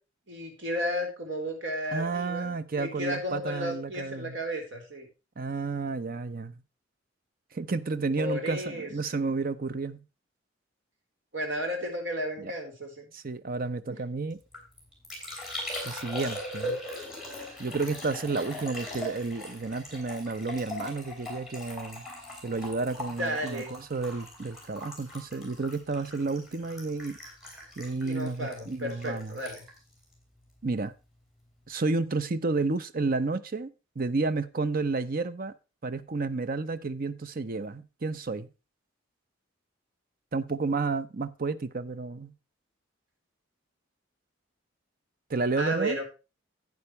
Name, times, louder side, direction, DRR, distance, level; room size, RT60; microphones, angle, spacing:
voice 1, 0.3-5.1 8.2-8.9 11.3-13.1 13.9-14.0 23.2-23.7 28.0-29.6 45.6-46.0, equal, 65° right, 4.1 m, -33 dB
voice 2, 1.9-4.4 5.4-6.6 7.5-10.0 12.4-12.5 13.1-14.4 15.8-16.8 17.6-22.1 22.4-27.2 27.8-29.4 30.6-30.9 31.7-35.5 35.8-38.5 40.3-42.3 45.3-46.0, right 3 dB, 45° right, 0.7 m, -31 dB
Liquid, 14.3-30.9 31.2-31.7, left 1 dB, 5° right, 5.2 m, -40 dB
11.5 x 9.5 x 3.2 m
head